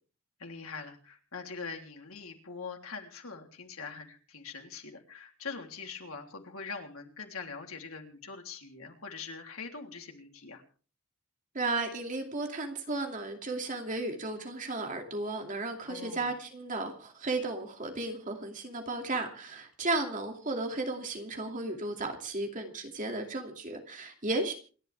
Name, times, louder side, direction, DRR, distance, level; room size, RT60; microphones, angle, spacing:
voice 1, 0.4-10.6 15.9-16.3, left 5 dB, 80° left, 3 dB, 3.4 m, -43 dB
voice 2, 11.5-24.5, right 2 dB, 35° right, 3 dB, 2.6 m, -34 dB
28.0 x 11.5 x 3.5 m, 0.40 s
head